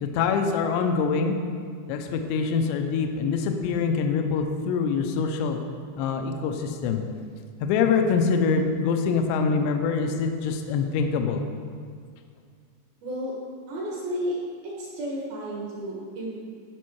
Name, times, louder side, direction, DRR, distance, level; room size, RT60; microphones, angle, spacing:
voice 1, 0.0-1.4 1.9-5.6 6.0-7.0 7.6-11.4, left 5 dB, 80° left, 5 dB, 2.7 m, -24 dB
voice 2, 13.0-13.3 13.7-14.3 14.6-16.4, equal, 65° right, -4 dB, 2.6 m, -32 dB
13.0 x 5.4 x 4.6 m, 2.1 s
omnidirectional pair, 5.4 m